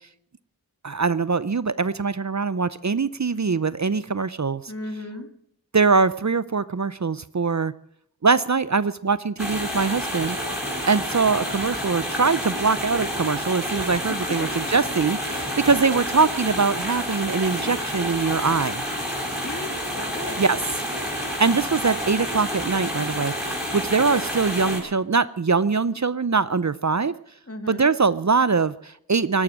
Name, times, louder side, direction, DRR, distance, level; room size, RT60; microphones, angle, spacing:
voice 1, 0.8-4.6 5.7-7.7 8.2-10.4 10.9-18.8 20.4-20.6 21.4-27.1 27.7-29.4, right 4 dB, 50° right, 17 dB, 0.6 m, -22 dB
voice 2, 4.7-5.3 14.1-14.5 19.4-20.4 27.5-27.9, left 1 dB, 40° left, 7 dB, 2.8 m, -35 dB
sound 1, 9.4-24.8, equal, ahead, 6.2 m, -29 dB
18.0 x 12.0 x 6.2 m, 0.68 s
wide cardioid pair, 40°, 37 cm